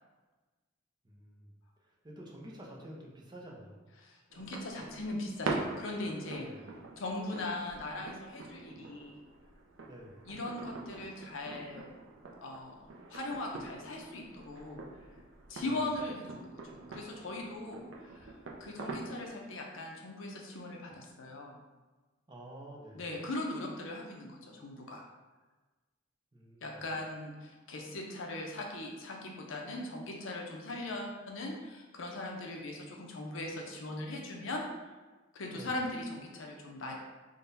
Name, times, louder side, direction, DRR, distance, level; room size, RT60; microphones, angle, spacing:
voice 1, 1.0-3.8 6.3-6.8 9.8-10.3 15.6-15.8 22.3-23.1 26.3-26.8 35.5-35.7, right 1 dB, 20° right, -3 dB, 0.5 m, -50 dB
voice 2, 4.0-6.5 7.0-9.2 10.3-11.9 12.4-12.8 13.1-14.8 15.5-18.3 18.6-21.6 22.9-25.0 26.6-34.6 35.3-36.9, left 2 dB, 80° left, 0 dB, 0.6 m, -39 dB
sound 1, 4.3-19.3, right 3 dB, 75° right, 0.5 m, -44 dB
3.8 x 2.2 x 3.9 m, 1.2 s
head